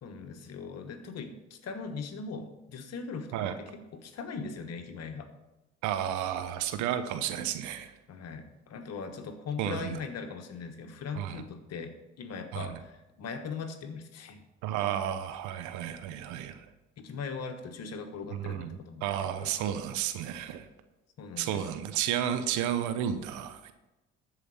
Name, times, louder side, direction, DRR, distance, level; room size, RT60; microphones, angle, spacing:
voice 1, 0.0-5.3 8.1-14.4 17.0-19.5 21.2-21.6, left 5 dB, 60° left, 7 dB, 1.4 m, -40 dB
voice 2, 5.8-7.9 9.6-10.0 11.2-11.4 12.5-12.7 14.6-16.7 18.3-20.7 21.4-23.7, right 10 dB, 80° right, 9 dB, 0.8 m, -32 dB
13.0 x 5.0 x 5.6 m, 1.0 s
supercardioid pair, 60°, 30 cm